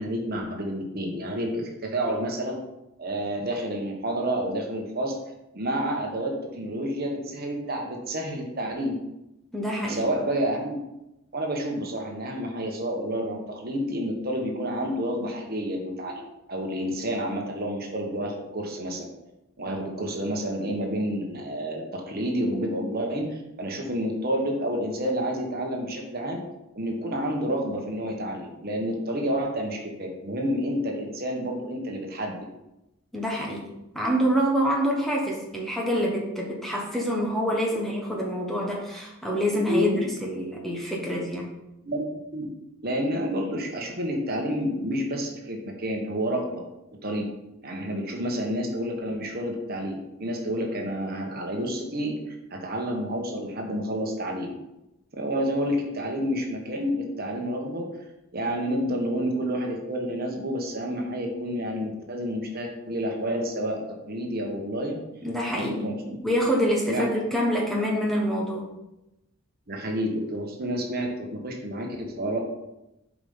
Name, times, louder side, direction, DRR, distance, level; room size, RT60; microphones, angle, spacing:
voice 1, 0.0-2.6 3.0-5.1 5.5-9.0 9.9-10.7 11.3-19.1 19.6-26.4 26.7-32.4 39.5-40.0 41.8-42.0 42.3-42.5 42.8-46.5 47.0-47.3 47.6-54.5 55.1-57.9 58.3-65.0 65.5-66.2 66.9-67.1 69.7-72.4, equal, 45° right, 1 dB, 1.3 m, -29 dB
voice 2, 9.5-10.0 29.1-29.2 33.1-33.7 33.9-39.9 40.2-41.5 65.2-65.9 66.2-68.7, equal, ahead, -2 dB, 1.2 m, -26 dB
7.2 x 5.1 x 5.5 m, 0.91 s
head